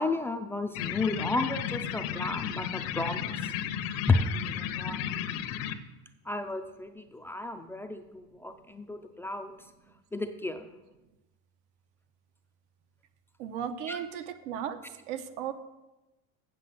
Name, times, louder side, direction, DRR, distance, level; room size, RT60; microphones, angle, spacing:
voice 1, 0.0-3.5 3.8-5.0 6.3-9.5 10.1-10.7 13.9-14.0, left 3 dB, 5° left, 6 dB, 0.3 m, -32 dB
sound 1, 0.7-5.7, left 9 dB, 70° left, 1.0 m, -34 dB
voice 2, 13.4-14.8 15.1-15.5, right 9 dB, 90° right, 8 dB, 1.1 m, -35 dB
7.6 x 7.5 x 7.8 m, 1.0 s
cardioid pair, 150°, 34 cm